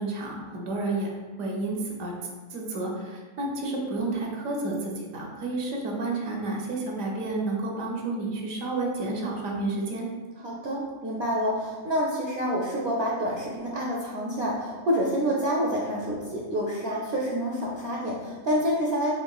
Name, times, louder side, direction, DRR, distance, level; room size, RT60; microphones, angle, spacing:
voice 1, 0.0-2.1 2.5-10.1, right 2 dB, 80° right, -1 dB, 1.0 m, -30 dB
voice 2, 10.4-19.1, equal, 65° right, -4 dB, 0.7 m, -28 dB
3.6 x 3.2 x 2.2 m, 1.4 s
omnidirectional pair, 1.4 m